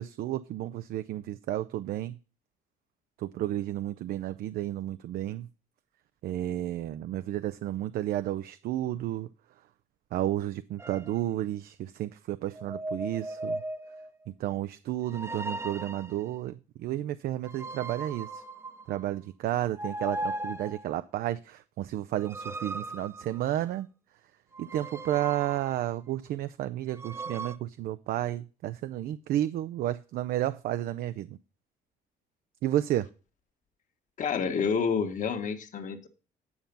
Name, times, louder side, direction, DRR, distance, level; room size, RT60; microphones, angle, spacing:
voice 1, 0.0-2.2 3.2-5.5 6.2-9.3 10.1-13.6 14.4-18.4 18.9-23.9 24.6-31.3 32.6-33.1, right 13 dB, 65° right, 0.5 m, -32 dB
sound 1, 10.8-11.1 12.5-14.1 15.1-16.2 17.4-19.2 19.7-20.9 22.1-23.7 24.5-25.9 26.9-27.6, right 2 dB, 15° right, 0.7 m, -38 dB
voice 2, 34.2-36.1, left 6 dB, 50° left, 1.5 m, -29 dB
9.5 x 5.7 x 5.3 m
cardioid pair, 110°, 17 cm